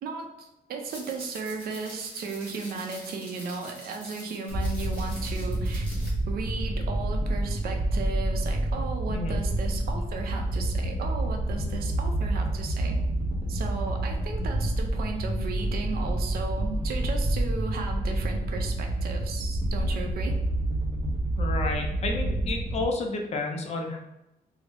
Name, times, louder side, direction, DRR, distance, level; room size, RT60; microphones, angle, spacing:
voice 1, 0.0-5.9 6.3-13.0 13.5-20.3, right 4 dB, 75° right, 3 dB, 0.6 m, -35 dB
sound 1, 0.8-6.1, equal, 10° left, 1.5 m, -45 dB
sound 2, 4.5-22.8, right 1 dB, 30° right, 0.8 m, -28 dB
voice 2, 21.4-24.0, left 3 dB, 45° left, 2 dB, 0.5 m, -31 dB
3.6 x 2.0 x 3.3 m, 0.92 s
wide cardioid pair, 165°, 16 cm